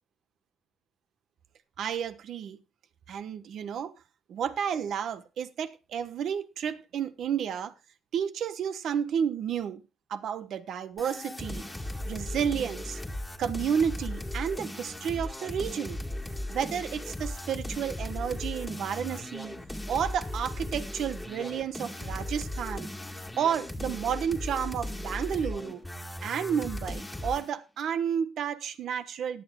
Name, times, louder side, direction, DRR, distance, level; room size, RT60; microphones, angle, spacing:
voice 1, 1.8-2.6 3.1-3.9 4.3-7.7 8.1-9.8 10.1-11.7 12.0-13.0 13.4-16.0 16.5-19.5 19.9-22.9 23.4-25.8 26.2-29.4, right 8 dB, 70° right, 1.2 m, -31 dB
sound 1, 11.0-27.5, left 1 dB, 10° left, 1.8 m, -37 dB
18.0 x 11.5 x 2.3 m
cardioid pair, 90°, 0 cm